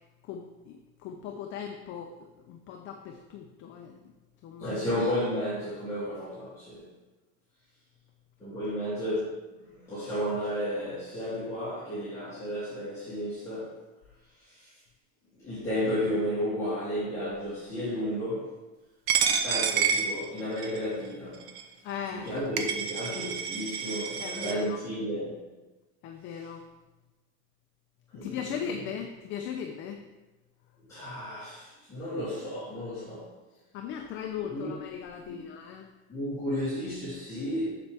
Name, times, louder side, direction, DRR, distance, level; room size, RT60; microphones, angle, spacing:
voice 1, 0.3-2.1 2.5-4.0 4.4-4.7 21.8-22.3 24.2-24.8 26.0-26.6 28.2-30.0 33.7-35.9, left 8 dB, 35° left, 3 dB, 0.5 m, -38 dB
voice 2, 4.6-6.9 8.4-13.8 14.4-14.7 15.4-18.5 19.4-21.5 22.1-25.4 28.1-28.7 30.9-33.3 34.4-34.8 35.3-35.4 36.1-37.7, equal, 10° left, -14 dB, 2.5 m, -33 dB
Coin (dropping), 19.1-20.8 21.5-21.6 22.3-22.4 22.6-24.5, right 7 dB, 60° right, 0.8 m, -28 dB
7.1 x 6.9 x 3.4 m, 1.2 s
cardioid pair, 170°, 32 cm